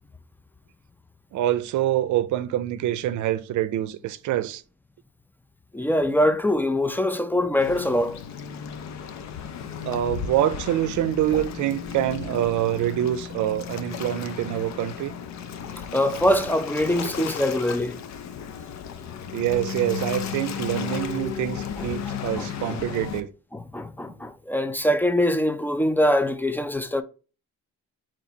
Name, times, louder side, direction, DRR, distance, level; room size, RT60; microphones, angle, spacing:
voice 1, 1.3-4.6 9.8-15.1 19.3-23.3, right 12 dB, 75° right, 0.5 m, -25 dB
voice 2, 5.7-8.2 15.8-18.0 21.8-22.8 23.5-27.0, left 1 dB, 5° left, 0.4 m, -24 dB
Waves surf, 7.6-23.2, left 8 dB, 65° left, 0.7 m, -34 dB
4.0 x 3.1 x 4.3 m
cardioid pair, 90°, 30 cm